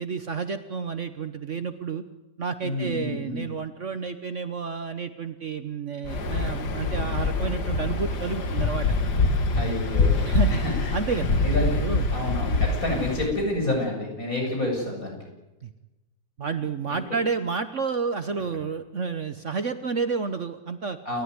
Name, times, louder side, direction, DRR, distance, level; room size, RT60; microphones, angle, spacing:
voice 1, 0.0-2.0 2.4-8.9 9.5-9.6 10.2-10.6 10.9-11.4 11.6-12.0 15.6-15.7 16.4-21.0, right 5 dB, 50° right, 10 dB, 1.3 m, -30 dB
voice 2, 2.6-3.5 9.6-10.9 11.4-11.8 12.1-15.2 17.1-17.2 21.0-21.2, left 1 dB, 55° left, 1 dB, 8.4 m, -29 dB
Waves surf, 6.0-13.3, left 3 dB, 70° left, 2.3 m, -25 dB
29.5 x 15.0 x 9.6 m, 1.0 s
omnidirectional pair, 1.8 m